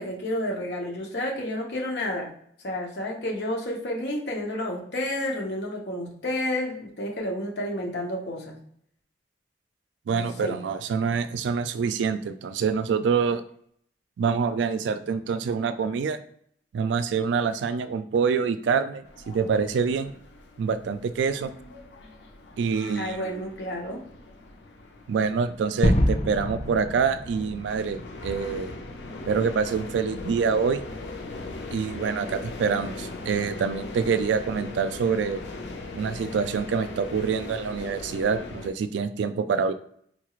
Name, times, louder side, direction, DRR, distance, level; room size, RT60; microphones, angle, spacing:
voice 1, 0.0-2.3 2.6-8.6 10.1-10.6 23.0-24.0, left 1 dB, 70° left, 0 dB, 0.9 m, -30 dB
voice 2, 10.1-13.4 14.2-16.2 16.7-20.1 20.6-21.5 22.6-23.5 25.1-28.7 29.3-30.8 31.7-35.4 35.9-39.7, right 5 dB, 90° right, 11 dB, 0.3 m, -26 dB
sound 1, 19.0-38.7, left 2 dB, 90° left, 0.6 m, -40 dB
Gunshot gunfire / Fireworks / Boom, 25.8-30.6, left 1 dB, 35° left, 0.5 m, -28 dB
4.3 x 2.4 x 3.0 m, 0.67 s
head